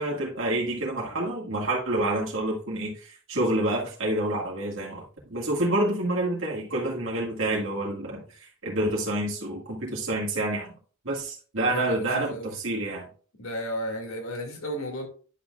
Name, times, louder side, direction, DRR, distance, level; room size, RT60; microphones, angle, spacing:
voice 1, 0.0-8.2 8.6-10.7 11.0-13.1, right 1 dB, 65° right, 1.8 m, -28 dB
voice 2, 11.6-12.5 13.4-15.1, equal, 85° left, 2.2 m, -33 dB
10.0 x 6.3 x 2.4 m
head